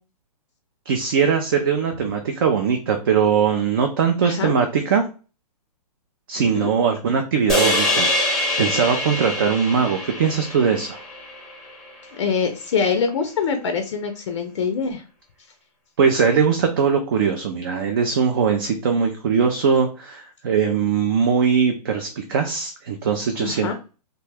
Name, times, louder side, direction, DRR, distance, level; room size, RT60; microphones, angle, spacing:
voice 1, 0.9-5.0 6.3-11.0 16.0-23.7, right 6 dB, 35° right, 4 dB, 0.3 m, -21 dB
voice 2, 4.2-4.5 6.4-6.7 12.1-15.0 23.4-23.7, left 5 dB, 45° left, 5 dB, 0.5 m, -24 dB
sound 1, 7.5-11.9, left 1 dB, ahead, 0.7 m, -24 dB
2.9 x 2.2 x 3.2 m, 0.34 s
hypercardioid pair, 160°, 21 cm